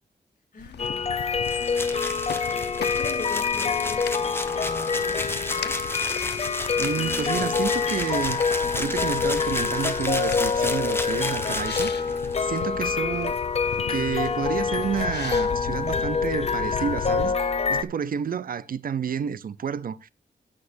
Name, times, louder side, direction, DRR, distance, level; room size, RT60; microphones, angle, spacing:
voice 1, 0.5-1.8 2.4-5.8, left 3 dB, 55° left, 2.8 m, -42 dB
sound 1, 0.6-17.3, left 9 dB, 85° left, 0.6 m, -38 dB
sound 2, 0.8-17.8, left 5 dB, 40° left, 0.6 m, -26 dB
sound 3, 1.4-12.6, left 2 dB, 15° left, 1.2 m, -33 dB
voice 2, 6.8-8.4 8.7-12.1 12.4-13.4 13.9-20.1, right 7 dB, 60° right, 0.5 m, -30 dB
17.0 x 6.5 x 2.6 m
wide cardioid pair, 135°, 17 cm